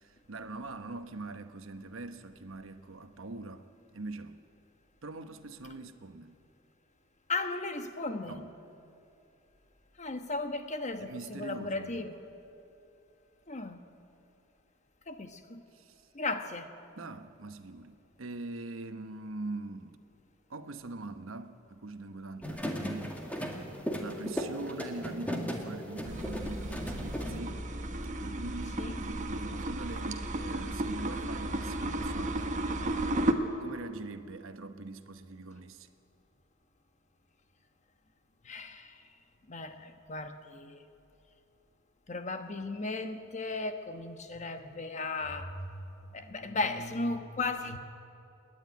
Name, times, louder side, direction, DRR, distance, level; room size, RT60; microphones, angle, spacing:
voice 1, 0.0-4.4 5.0-6.4 8.2-8.5 11.0-12.2 15.7-16.1 17.0-20.0 20.5-23.6 24.0-27.7 28.2-32.6 33.6-35.9, right 2 dB, 80° right, 1.0 m, -43 dB
voice 2, 7.3-8.5 10.0-12.1 13.5-13.8 15.1-15.6 16.1-16.7 28.8-29.0 38.4-39.0 39.5-40.8 42.1-45.8 46.1-47.8, left 3 dB, 35° left, 1.2 m, -36 dB
sound 1, 22.4-27.4, equal, 10° left, 2.0 m, -36 dB
sound 2, 26.0-33.3, right 1 dB, 40° right, 1.3 m, -34 dB
28.5 x 10.5 x 9.4 m
head